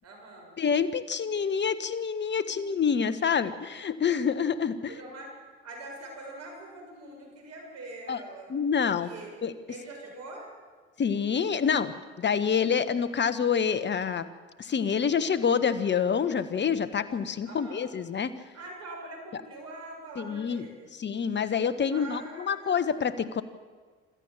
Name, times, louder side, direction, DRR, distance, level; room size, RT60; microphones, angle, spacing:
voice 1, 0.0-0.6 4.9-5.3 5.6-8.5 8.9-10.5 17.5-17.8 18.5-20.9 21.9-22.8, right 2 dB, 60° right, 1 dB, 7.0 m, -44 dB
voice 2, 0.6-4.9 8.1-8.2 8.5-9.1 9.4-9.5 11.0-11.9 12.2-14.3 14.6-18.3 20.2-20.6 20.9-23.4, left 6 dB, 35° left, 13 dB, 1.4 m, -27 dB
26.0 x 13.5 x 7.5 m, 1.5 s
hypercardioid pair, 65°, 30 cm